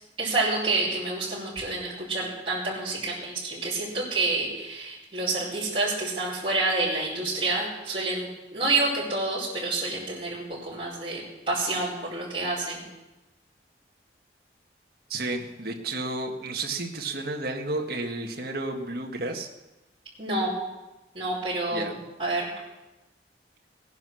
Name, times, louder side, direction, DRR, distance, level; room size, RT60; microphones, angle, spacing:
voice 1, 0.2-12.9 20.2-20.5 21.1-22.5, right 2 dB, 30° right, -10 dB, 5.1 m, -28 dB
voice 2, 15.1-19.5 21.7-22.0, right 2 dB, 55° right, 2 dB, 1.8 m, -32 dB
18.0 x 10.5 x 6.4 m, 1.0 s
head